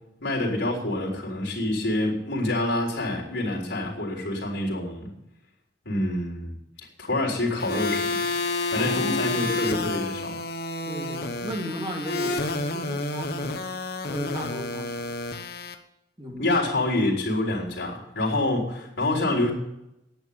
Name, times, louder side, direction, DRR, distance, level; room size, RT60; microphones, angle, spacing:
voice 1, 0.2-5.1 5.8-6.5 7.0-8.2 8.7-10.4 16.4-19.5, left 2 dB, 90° left, -3 dB, 3.9 m, -27 dB
sound 1, 7.6-15.7, left 3 dB, 55° left, 1.2 m, -29 dB
voice 2, 8.7-9.6 10.9-13.7 14.1-15.1 16.2-16.5, equal, 25° right, -1 dB, 3.2 m, -36 dB
10.5 x 9.1 x 8.7 m, 0.86 s
head